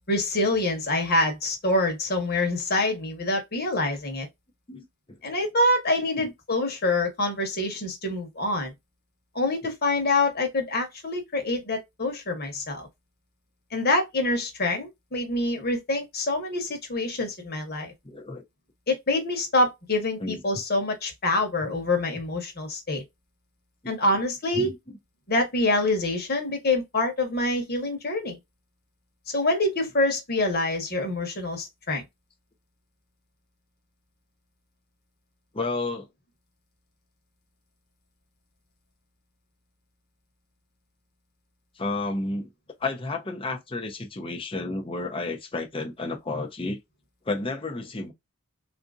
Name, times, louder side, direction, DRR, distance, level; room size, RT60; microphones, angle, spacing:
voice 1, 0.1-4.3 5.2-8.7 9.3-12.9 13.7-17.9 18.9-23.0 23.9-24.7 25.3-28.4 29.3-32.0, left 2 dB, 45° left, 1.3 m, -26 dB
voice 2, 18.0-18.4 20.2-20.4 23.8-23.9 24.5-24.7 35.5-36.1 41.8-42.5 42.8-46.8 47.3-48.1, left 2 dB, 25° left, 0.7 m, -31 dB
4.1 x 2.7 x 2.4 m
head